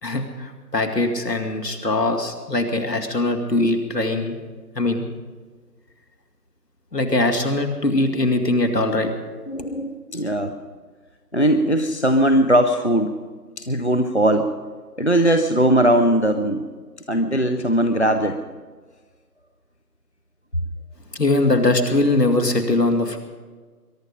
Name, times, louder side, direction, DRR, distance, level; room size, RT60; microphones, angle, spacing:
voice 1, 0.0-4.4 4.8-5.1 6.9-9.1 21.1-23.2, left 2 dB, 70° left, 5 dB, 2.5 m, -21 dB
voice 2, 9.5-10.5 11.3-13.1 13.6-14.5 15.0-16.7 17.1-18.4, right 1 dB, 45° left, 7 dB, 0.7 m, -19 dB
22.5 x 11.5 x 5.2 m, 1.4 s
figure-of-eight pair, 180°, 50 cm